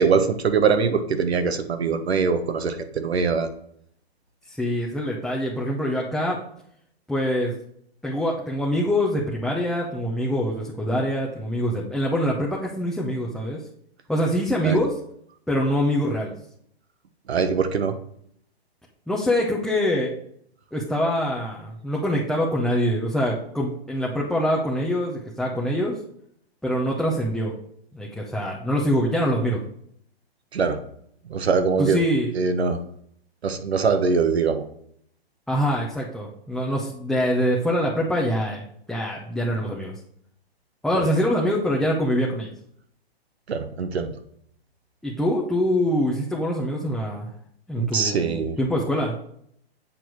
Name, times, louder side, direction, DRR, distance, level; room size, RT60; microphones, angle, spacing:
voice 1, 0.0-3.5 14.6-14.8 17.3-17.9 30.5-30.8 31.3-32.0 32.3-32.8 33.4-34.6 40.9-41.0 43.5-44.1 47.8-48.6, right 5 dB, 85° right, 8 dB, 1.2 m, -22 dB
voice 2, 4.5-6.4 7.1-7.5 8.0-13.6 14.1-14.9 15.5-16.3 19.1-20.1 20.7-26.0 26.6-27.5 27.9-29.6 31.8-32.3 35.5-39.9 40.8-42.5 45.0-47.3 47.7-49.1, equal, ahead, -4 dB, 0.6 m, -24 dB
8.1 x 4.5 x 4.6 m, 0.67 s
hypercardioid pair, 140°, 31 cm